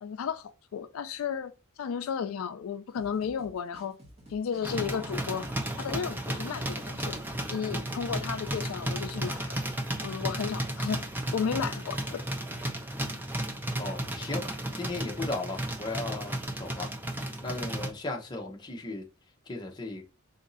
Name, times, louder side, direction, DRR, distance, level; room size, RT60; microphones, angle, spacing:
voice 1, 0.0-1.5 1.8-4.0 4.3-5.5 5.8-7.1 7.5-9.6 10.0-11.0 11.3-12.3, left 7 dB, 80° left, 0.4 m, -33 dB
sound 1, 2.9-10.2, right 1 dB, 30° right, 1.3 m, -53 dB
sound 2, 4.6-17.9, right 1 dB, 10° right, 0.4 m, -34 dB
voice 2, 13.8-14.4 14.7-16.9 17.4-19.0 19.5-20.0, left 2 dB, 20° left, 0.7 m, -36 dB
4.0 x 2.6 x 3.9 m
head